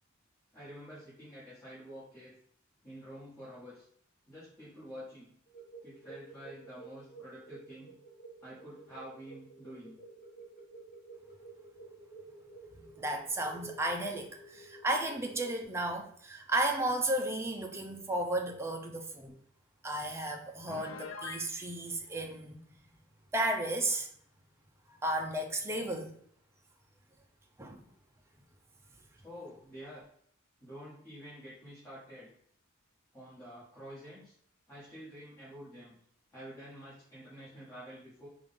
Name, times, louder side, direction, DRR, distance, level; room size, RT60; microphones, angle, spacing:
voice 1, 0.5-2.3 2.8-3.9 4.2-5.3 5.8-7.9 8.4-10.0 29.2-30.0 30.6-32.3 33.1-34.3 34.7-35.9 36.3-38.3, equal, 15° left, -11 dB, 1.7 m, -48 dB
sound 1, 5.5-15.6, right 3 dB, 40° left, 1.1 m, -52 dB
voice 2, 12.8-19.3 19.8-22.6 23.3-24.1 24.9-26.1 27.6-27.8, right 1 dB, 15° right, 2 dB, 0.5 m, -34 dB
Piano, 20.7-21.5, left 4 dB, 85° left, 0.6 m, -42 dB
4.9 x 2.5 x 3.6 m, 0.65 s
head